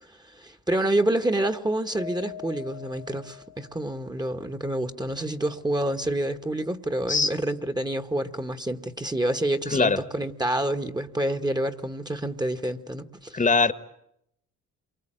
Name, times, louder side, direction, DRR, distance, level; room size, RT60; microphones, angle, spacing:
voice 1, 0.3-13.3, right 1 dB, 15° right, 1.4 m, -28 dB
Mallet percussion, 2.0-4.2, left 11 dB, 85° right, 3.0 m, -43 dB
voice 2, 13.3-13.7, left 4 dB, 25° left, 1.4 m, -21 dB
28.0 x 24.0 x 8.9 m
cardioid pair, 90°, 30 cm